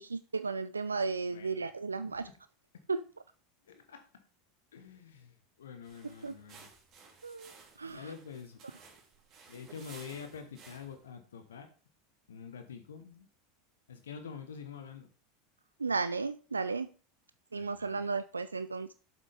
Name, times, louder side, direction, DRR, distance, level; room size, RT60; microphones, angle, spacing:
voice 1, 0.0-2.3 2.9-3.0 6.2-6.4 7.2-7.5 7.8-8.1 15.8-16.9 17.5-18.9, right 4 dB, 85° right, 12 dB, 0.4 m, -34 dB
voice 2, 1.3-1.7 2.0-2.4 2.7-2.8 3.7-4.3 4.7-6.7 7.9-8.6 9.5-11.7 12.3-13.3 13.9-15.1 17.5-18.0, left 6 dB, 75° left, 7 dB, 1.1 m, -47 dB
sound 1, 5.8-11.1, right 5 dB, 40° right, 3.1 m, -56 dB
8.1 x 7.5 x 3.5 m, 0.35 s
figure-of-eight pair, 85°, 0 cm